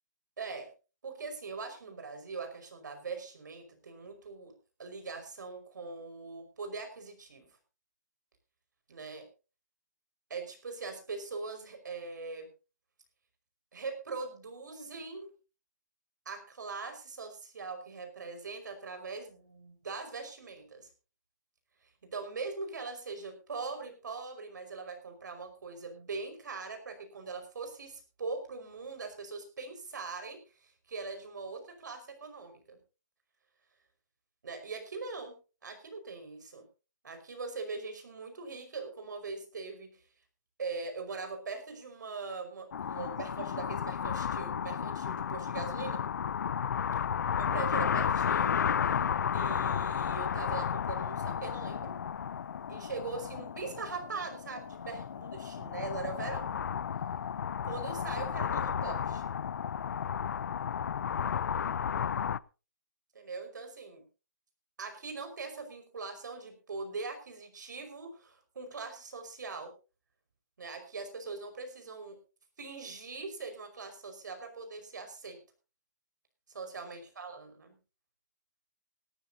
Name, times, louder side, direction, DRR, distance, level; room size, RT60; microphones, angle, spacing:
voice 1, 0.4-0.7 1.0-4.5 4.8-7.5 8.9-9.3 10.3-12.5 13.7-15.3 16.3-20.9 22.1-32.8 34.4-35.4 35.6-36.6 37.0-40.0 40.6-46.0 47.5-48.6 49.3-51.9 52.7-56.6 57.6-59.2 63.1-64.0 64.8-69.7 70.6-72.2 72.6-75.4 76.5-77.8, right 4 dB, 80° right, 7 dB, 5.3 m, -41 dB
sound 1, 42.7-62.4, left 7 dB, 70° left, 0.6 m, -33 dB
18.5 x 14.5 x 2.8 m, 0.32 s
hypercardioid pair, 155°, 10 cm